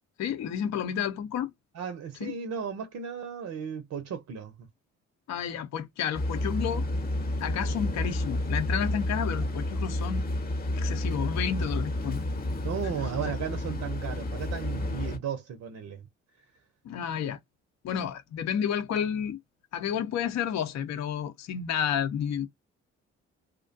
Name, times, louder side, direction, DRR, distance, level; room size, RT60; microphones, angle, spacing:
voice 1, 0.2-1.5 2.2-2.3 5.3-6.8 7.4-10.2 10.7-12.2 13.2-13.3 16.8-17.4 17.8-19.4 19.7-22.5, left 8 dB, 50° left, 0.6 m, -31 dB
voice 2, 1.7-4.5 12.6-16.0, right 7 dB, 50° right, 0.7 m, -35 dB
sound 1, 6.1-15.2, left 1 dB, 25° left, 0.9 m, -30 dB
2.4 x 2.1 x 2.5 m
hypercardioid pair, 45°, 35 cm